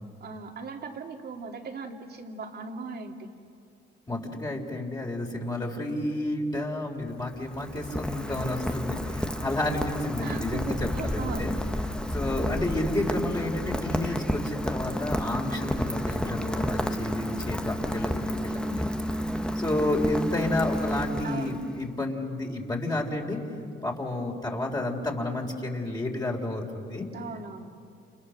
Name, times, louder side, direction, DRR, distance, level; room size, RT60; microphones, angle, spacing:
voice 1, 0.2-3.3 10.2-11.5 21.2-21.6 27.1-27.7, right 4 dB, 55° right, 3 dB, 2.7 m, -38 dB
voice 2, 4.1-11.6 12.1-18.9 19.6-23.4 23.8-27.1, left 1 dB, 20° left, 0 dB, 3.9 m, -31 dB
Rain, 7.0-21.8, equal, 5° left, 1.3 m, -31 dB
30.0 x 29.5 x 6.6 m, 2.5 s
cardioid pair, 90°, 20 cm